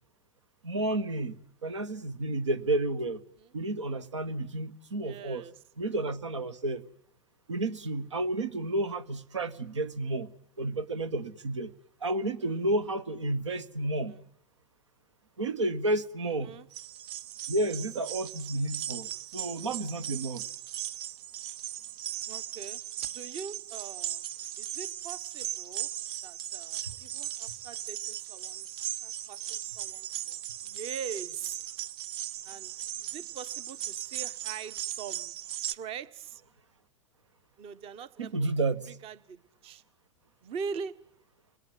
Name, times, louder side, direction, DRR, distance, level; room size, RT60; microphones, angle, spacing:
voice 1, 0.6-1.4 1.6-3.2 3.5-5.4 5.8-6.8 7.5-10.3 10.6-11.7 12.0-14.1 15.4-16.5 17.5-20.4 26.8-26.9 38.2-38.9, right 2 dB, 85° right, 12 dB, 1.5 m, -31 dB
voice 2, 5.0-5.5 12.4-12.6 14.1-14.3 16.3-16.7 22.3-22.8 23.1-24.2 24.6-25.9 26.2-28.7 29.0-31.6 32.4-32.7 33.0-35.3 35.7-36.4 37.6-38.5 38.9-39.8 40.4-41.0, right 6 dB, 40° right, 15 dB, 1.5 m, -43 dB
sound 1, 16.7-35.7, right 12 dB, 55° right, 1.0 m, -38 dB
30.0 x 19.5 x 9.4 m, 0.74 s
hypercardioid pair, 95°, 15 cm